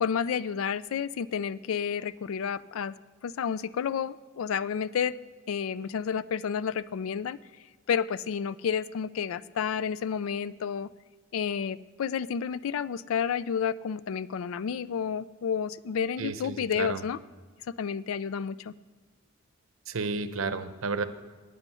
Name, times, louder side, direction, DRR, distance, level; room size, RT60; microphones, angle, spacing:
voice 1, 0.0-2.9 3.2-5.1 5.5-7.4 7.9-10.9 11.3-17.2 17.8-18.7, left 7 dB, 85° left, 18 dB, 0.4 m, -30 dB
voice 2, 16.2-17.1 19.9-21.0, right 4 dB, 90° right, 12 dB, 0.7 m, -32 dB
9.6 x 9.0 x 5.5 m, 1.5 s
head